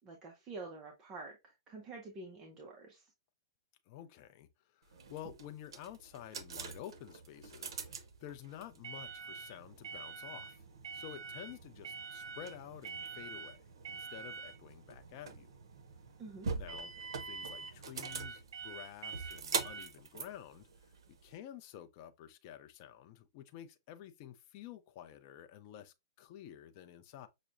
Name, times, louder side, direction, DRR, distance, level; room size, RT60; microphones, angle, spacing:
voice 1, 0.0-3.1 16.2-16.5, right 3 dB, 20° right, 0.5 m, -48 dB
voice 2, 3.9-4.5 4.7-10.6 10.9-13.6 13.9-15.5 16.5-16.9 17.2-20.9 21.2-27.3, left 11 dB, 30° left, 0.4 m, -50 dB
sound 1, 4.9-21.3, right 5 dB, 80° right, 0.6 m, -43 dB
5.7 x 2.0 x 2.5 m
hypercardioid pair, 165°, 3 cm